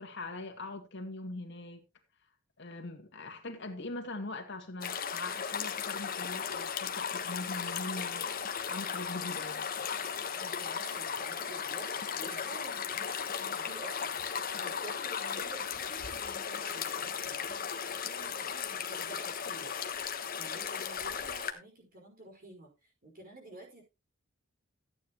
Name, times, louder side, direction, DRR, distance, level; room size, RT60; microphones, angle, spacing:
voice 1, 0.0-1.8 2.6-9.7, left 2 dB, 60° left, 2.4 m, -42 dB
sound 1, 4.8-21.5, left 7 dB, 45° left, 1.3 m, -36 dB
voice 2, 9.9-19.7 20.4-22.7 23.0-23.8, right 2 dB, 45° right, 5.3 m, -50 dB
14.0 x 9.3 x 3.1 m
head